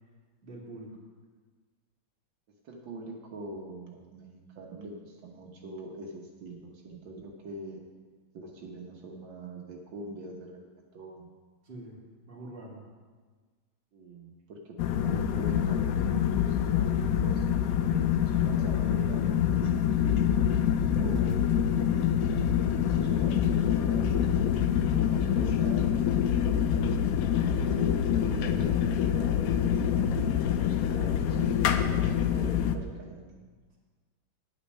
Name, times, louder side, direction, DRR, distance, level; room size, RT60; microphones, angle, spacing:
voice 1, 0.4-1.0 11.7-12.0 12.3-12.8 20.8-21.1 27.8-28.0, right 2 dB, 30° right, -4 dB, 2.3 m, -44 dB
voice 2, 2.6-7.8 8.3-10.6 10.9-11.3 13.9-20.3 21.0-21.9 22.9-27.0 27.6-28.8 29.1-33.2, right 1 dB, 75° right, 0 dB, 1.8 m, -43 dB
sound 1, 14.8-32.8, left 9 dB, 75° left, 0.8 m, -26 dB
9.5 x 8.7 x 5.4 m, 1.5 s
omnidirectional pair, 2.1 m